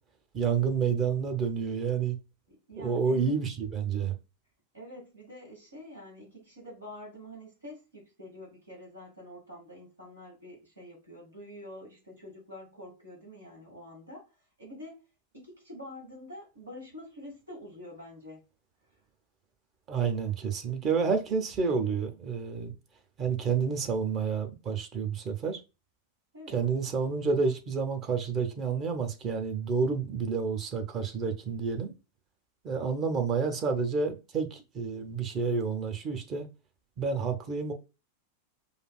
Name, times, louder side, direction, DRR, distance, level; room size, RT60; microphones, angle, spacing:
voice 1, 0.3-2.2 2.8-4.1 19.9-22.7 23.2-25.6 26.5-31.9 32.6-36.5 37.0-37.7, right 5 dB, 30° right, 0.7 m, -29 dB
voice 2, 2.5-3.4 4.7-14.2 14.6-15.0 15.3-18.4 26.3-26.6, left 1 dB, 80° right, 1.9 m, -47 dB
5.0 x 2.5 x 2.3 m
figure-of-eight pair, 90°, 0 cm